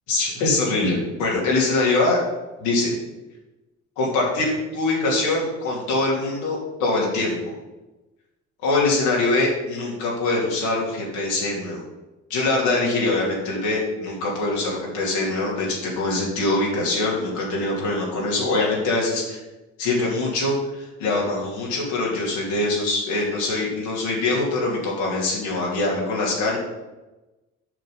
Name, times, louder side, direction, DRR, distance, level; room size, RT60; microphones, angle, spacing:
voice 1, 0.1-2.2 2.6-2.9 4.0-7.5 8.6-11.8 12.3-19.4 19.8-26.6, left 2 dB, 80° left, -3 dB, 2.8 m, -23 dB
7.8 x 5.9 x 5.4 m, 1.1 s
hypercardioid pair, 50°, 40 cm